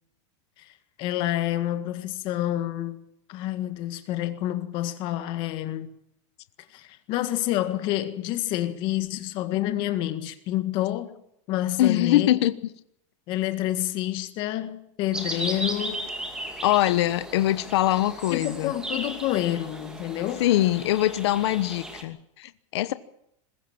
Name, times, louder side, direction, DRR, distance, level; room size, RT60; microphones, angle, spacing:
voice 1, 1.0-3.0 3.3-5.9 6.7-11.1 11.5-12.3 13.3-16.1 18.3-20.5, left 14 dB, 30° left, 1.7 m, -28 dB
voice 2, 11.8-12.5 16.6-18.7 20.4-22.9, left 14 dB, 60° left, 1.1 m, -23 dB
sound 1, 15.1-22.0, right 1 dB, 5° right, 2.4 m, -36 dB
21.0 x 16.0 x 8.8 m
supercardioid pair, 175°, 16 cm